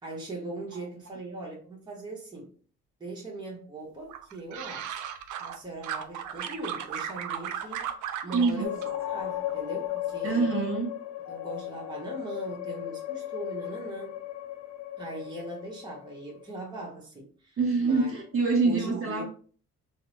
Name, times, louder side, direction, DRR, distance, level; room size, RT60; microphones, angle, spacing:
voice 1, 0.0-2.5 3.0-5.0 5.4-7.9 8.2-10.5 11.3-14.2 15.0-18.1 18.6-19.2, right 2 dB, 15° right, 1.0 m, -40 dB
sound 1, 4.1-5.6 5.8-8.5 8.8-9.6 9.9-10.3, right 9 dB, 75° right, 0.5 m, -36 dB
voice 2, 8.3-8.9 10.2-10.9 17.6-19.2, right 4 dB, 45° right, 1.3 m, -26 dB
sound 2, 8.6-16.8, left 13 dB, 60° left, 0.6 m, -36 dB
3.4 x 2.1 x 3.2 m
cardioid pair, 90°, 30 cm